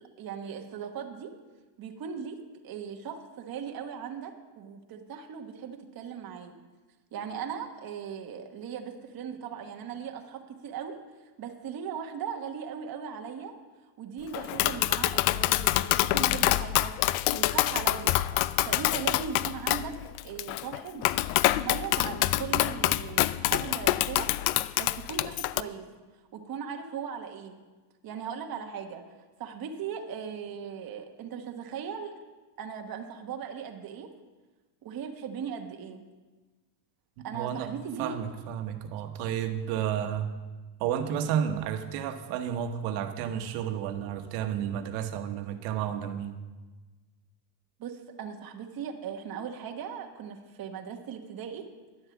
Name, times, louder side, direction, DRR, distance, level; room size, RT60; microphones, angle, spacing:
voice 1, 0.0-1.3 1.8-2.4 2.6-6.6 7.1-11.0 11.4-13.5 14.0-16.9 17.3-18.2 18.6-20.0 20.2-21.1 21.5-24.3 24.8-25.9 26.3-27.6 28.0-29.0 29.4-32.1 32.6-34.1 34.8-36.0 37.2-38.2 47.8-51.7, right 7 dB, 45° right, 3 dB, 1.3 m, -38 dB
Tap, 14.3-25.6, left 17 dB, 75° left, 0.6 m, -26 dB
voice 2, 37.2-37.7 38.0-40.4 40.8-46.4, right 9 dB, 85° right, 7 dB, 1.3 m, -31 dB
11.0 x 7.8 x 7.1 m, 1.3 s
supercardioid pair, 100°, 49 cm